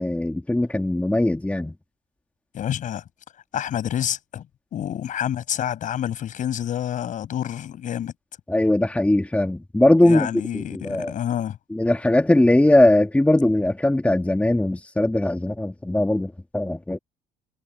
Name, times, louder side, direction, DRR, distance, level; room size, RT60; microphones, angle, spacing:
voice 1, 0.0-1.7 8.5-10.3 10.5-11.1 11.7-17.0, left 1 dB, 10° left, 2.4 m, -20 dB
voice 2, 2.5-3.0 3.5-4.4 4.7-8.1 10.0-11.6, left 10 dB, 55° left, 7.5 m, -28 dB
hypercardioid pair, 70°, 15 cm